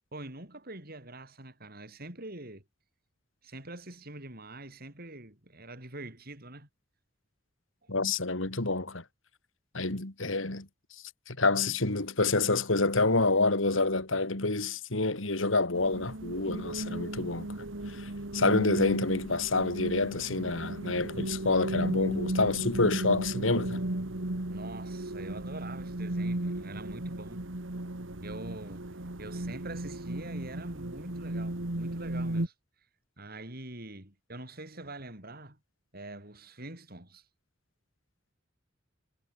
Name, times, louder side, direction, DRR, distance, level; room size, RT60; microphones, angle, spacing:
voice 1, 0.1-2.6 3.4-6.7 7.8-7.9 24.5-27.4 28.2-32.5 33.2-35.6 35.9-37.3, right 2 dB, 50° right, 7.3 m, -44 dB
voice 2, 7.9-9.0 9.7-10.7 11.3-17.5 17.9-23.8, left 3 dB, 85° left, 3.0 m, -28 dB
sound 1, 15.7-32.5, right 1 dB, 80° right, 2.0 m, -35 dB
head